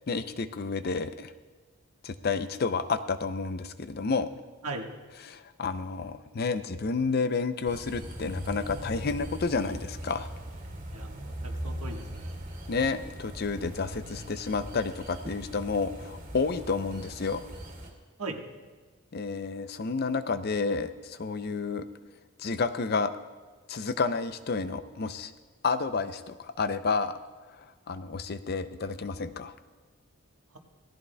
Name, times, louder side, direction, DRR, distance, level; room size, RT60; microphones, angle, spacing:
voice 1, 0.1-1.3 2.0-4.3 5.3-10.3 12.7-17.5 19.1-21.9 22.4-23.1 23.7-25.3 25.6-27.1 27.6-29.5, left 4 dB, 45° left, 11 dB, 0.5 m, -30 dB
sound 1, 7.7-17.9, equal, 40° right, 2.2 m, -40 dB
voice 2, 10.9-12.4 18.2-18.4, right 3 dB, 85° right, 2 dB, 1.4 m, -38 dB
18.0 x 14.5 x 2.2 m, 1.4 s
head